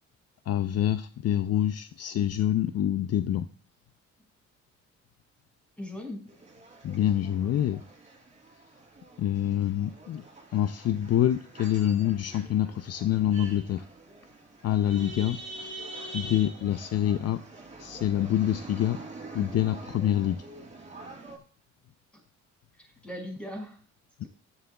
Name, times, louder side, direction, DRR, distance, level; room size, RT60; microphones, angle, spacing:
voice 1, 0.5-3.5 6.8-7.8 9.2-10.2 10.5-13.8 14.6-15.4 16.1-17.4 17.8-19.0 19.3-20.4 24.2-24.3, left 11 dB, 55° left, 11 dB, 0.6 m, -26 dB
voice 2, 5.8-6.2 9.4-9.6 9.9-10.0 19.3-19.6 22.8-23.8 24.2-24.3, left 1 dB, 5° left, 1 dB, 5.7 m, -39 dB
sound 1, 6.3-21.4, right 2 dB, 25° right, 4.3 m, -45 dB
15.0 x 11.0 x 2.3 m, 0.42 s
cardioid pair, 90°, 30 cm